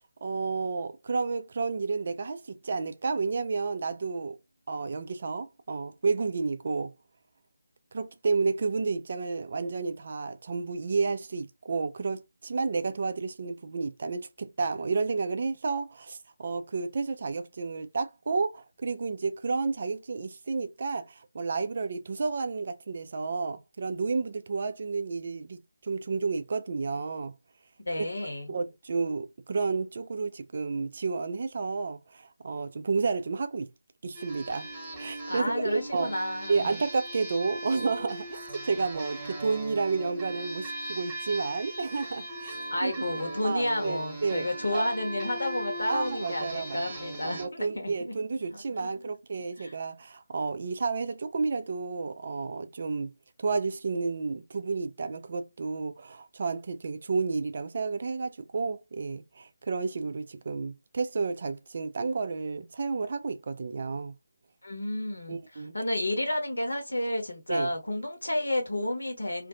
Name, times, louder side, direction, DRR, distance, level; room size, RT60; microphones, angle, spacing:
voice 1, 0.2-4.4 4.7-6.9 7.9-27.3 28.0-28.1 28.5-33.7 34.0-34.7 35.0-36.1 36.5-42.5 42.8-44.9 45.9-46.8 47.2-53.1 53.4-64.1 65.3-65.8 67.5-67.7, right 4 dB, 40° right, 0.3 m, -31 dB
voice 2, 27.9-28.6 35.2-36.7 42.7-48.1 48.5-48.9 49.6-49.7 64.6-69.5, left 1 dB, 65° left, 1.1 m, -31 dB
sound 1, 34.1-47.5, right 1 dB, 10° right, 1.1 m, -39 dB
2.5 x 2.4 x 2.4 m
figure-of-eight pair, 155°, 0 cm